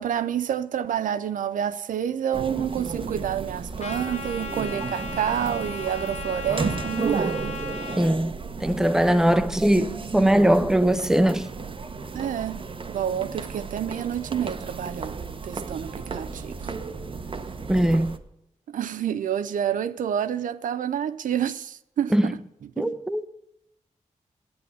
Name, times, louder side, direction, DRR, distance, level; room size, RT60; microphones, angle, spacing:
voice 1, 0.0-7.6 12.1-15.2 15.4-16.7 18.7-22.4 22.8-22.9, right 9 dB, 80° right, 0.4 m, -28 dB
sound 1, 2.3-18.2, right 4 dB, 40° right, 0.8 m, -33 dB
Trumpet, 3.8-8.0, left 4 dB, 55° left, 1.3 m, -36 dB
voice 2, 8.0-11.5 17.7-18.2 22.1-22.3 22.8-23.3, right 1 dB, 5° right, 0.8 m, -21 dB
8.6 x 8.6 x 8.2 m
cardioid pair, 60°, 13 cm